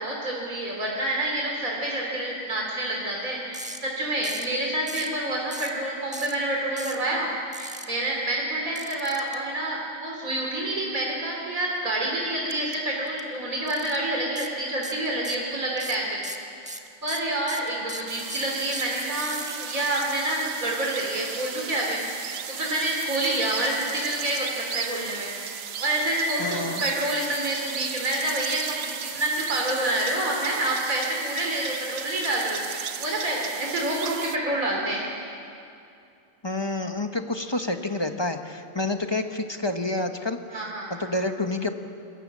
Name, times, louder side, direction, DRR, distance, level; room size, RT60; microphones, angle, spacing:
voice 1, 0.0-7.3 7.6-16.3 17.0-25.3 25.8-35.0 40.5-40.9, right 1 dB, 80° right, -2 dB, 3.6 m, -28 dB
sound 1, 3.5-3.8 4.2-4.5 4.9-5.1 5.5-5.8 6.1-6.3 6.8-7.0 7.5-7.8 8.8-9.3 12.5-12.8 13.1-13.2 13.7-14.0 14.4-14.5 14.8-15.5 15.8-19.5, right 1 dB, 5° right, 1.4 m, -38 dB
sound 2, 18.1-34.4, right 8 dB, 55° right, 0.9 m, -36 dB
voice 2, 26.4-26.9 36.4-40.6 41.0-41.8, left 2 dB, 20° left, 6 dB, 1.1 m, -28 dB
27.0 x 21.5 x 7.5 m, 2.5 s
omnidirectional pair, 1.4 m